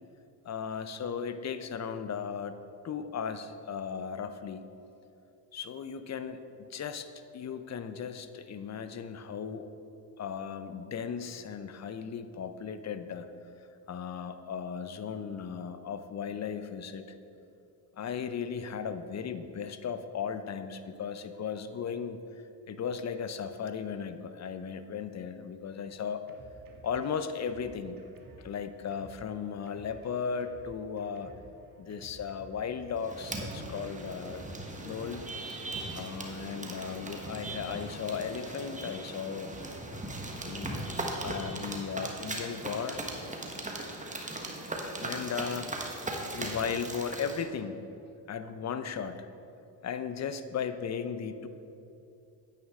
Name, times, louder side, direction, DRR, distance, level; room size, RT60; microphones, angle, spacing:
voice 1, 0.4-2.6 2.8-4.6 5.5-9.7 10.2-13.3 13.9-17.0 18.0-22.2 22.7-26.2 26.8-28.0 28.4-31.3 31.8-34.4 34.8-35.2 35.9-39.5 40.4-40.9 41.2-43.0 45.0-45.7 46.3-47.9 48.3-49.3 49.8-51.5, left 6 dB, 35° left, 10 dB, 0.6 m, -36 dB
Drum kit, 25.6-35.9, right 2 dB, 45° right, 1.4 m, -55 dB
sound 1, 33.0-47.4, right 2 dB, 15° right, 1.3 m, -38 dB
9.4 x 9.0 x 3.6 m, 2.8 s
supercardioid pair, 80°, 45 cm